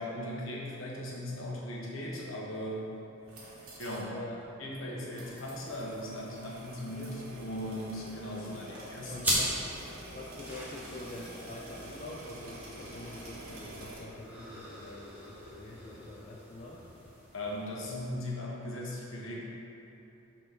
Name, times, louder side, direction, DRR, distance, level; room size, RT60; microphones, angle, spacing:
voice 1, 0.0-2.9 3.8-4.1 4.6-9.2 17.3-19.4, left 1 dB, 65° left, -4 dB, 1.3 m, -38 dB
sound 1, 3.1-4.1 4.4-4.5 5.1-14.0, right 1 dB, 80° right, 1.5 m, -47 dB
voice 2, 4.1-4.4 5.2-5.3 8.4-16.9, left 2 dB, 30° left, -3 dB, 0.4 m, -46 dB
sound 2, 9.2-18.2, equal, 10° right, 1.2 m, -39 dB
6.2 x 4.2 x 5.8 m, 2.9 s
head